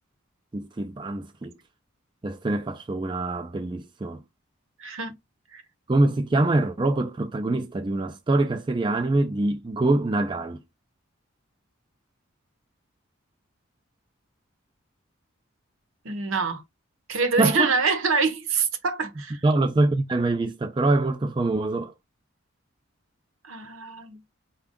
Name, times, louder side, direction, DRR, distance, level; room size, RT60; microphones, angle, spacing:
voice 1, 0.5-1.6 2.2-4.2 5.9-10.6 17.4-17.7 19.4-21.9, right 2 dB, 25° right, 0.4 m, -24 dB
voice 2, 4.8-5.2 5.5-5.6 16.0-16.6 17.1-19.4 23.4-24.2, right 4 dB, 80° right, 0.8 m, -25 dB
5.0 x 2.3 x 3.6 m
head